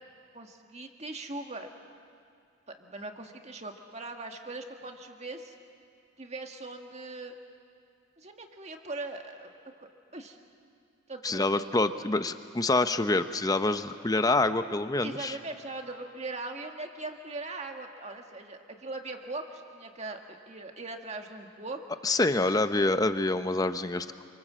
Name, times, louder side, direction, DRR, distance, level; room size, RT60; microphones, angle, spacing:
voice 1, 0.3-1.7 2.7-5.5 6.2-7.4 8.2-9.5 9.8-10.4 11.1-11.6 15.0-21.8, right 2 dB, 35° right, 4 dB, 1.9 m, -40 dB
voice 2, 11.2-15.4 22.0-24.2, left 2 dB, 20° left, 10 dB, 0.8 m, -26 dB
28.5 x 25.5 x 7.6 m, 2.4 s
head